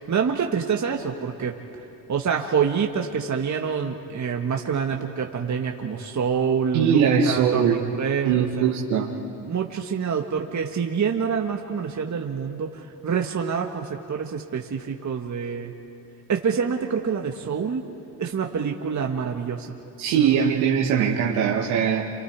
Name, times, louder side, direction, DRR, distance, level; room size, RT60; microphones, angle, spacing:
voice 1, 0.1-1.6 2.1-8.7 9.4-15.7 16.3-17.9 18.2-19.7 20.1-20.4, right 6 dB, 35° right, 2 dB, 1.7 m, -26 dB
voice 2, 6.7-7.8 8.2-9.1 20.0-22.0, right 7 dB, 75° right, -2 dB, 2.0 m, -21 dB
29.5 x 27.5 x 4.8 m, 2.7 s
supercardioid pair, 70°, 48 cm